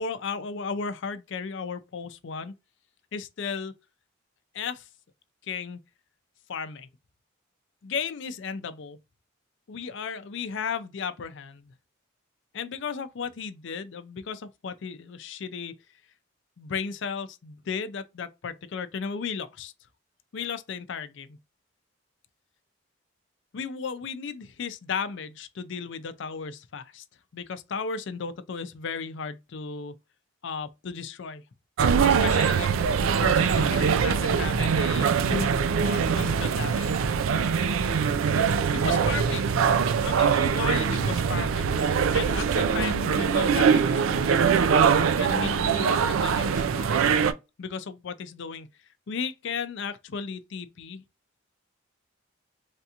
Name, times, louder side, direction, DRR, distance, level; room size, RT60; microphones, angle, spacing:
voice 1, 0.0-2.5 3.1-3.7 4.5-4.9 5.4-5.8 6.5-6.9 7.8-9.0 9.7-11.7 12.5-15.7 16.6-19.7 20.3-21.4 23.5-27.0 27.3-29.9 30.4-31.4 32.0-35.5 35.8-37.1 38.7-39.5 40.0-41.7 42.1-44.5 45.2-47.1 47.6-48.7 49.1-51.0, left 5 dB, 60° left, 0.4 m, -35 dB
sound 1, 31.8-47.3, right 6 dB, 85° right, 0.4 m, -23 dB
3.3 x 2.8 x 2.4 m
head